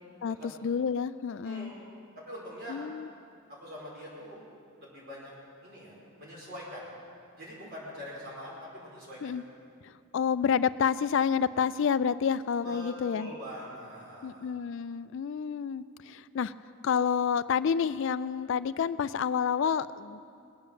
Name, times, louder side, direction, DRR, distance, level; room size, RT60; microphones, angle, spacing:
voice 1, 0.6-1.7 2.7-3.1 9.2-9.4 9.8-13.3 14.2-16.5 16.8-20.4, left 7 dB, 60° left, 16 dB, 0.3 m, -29 dB
voice 2, 1.4-1.9 2.1-2.8 3.5-4.4 4.8-5.3 5.6-6.8 7.4-9.3 12.6-14.5, equal, 45° right, -5 dB, 5.1 m, -44 dB
20.5 x 9.0 x 7.5 m, 2.4 s
head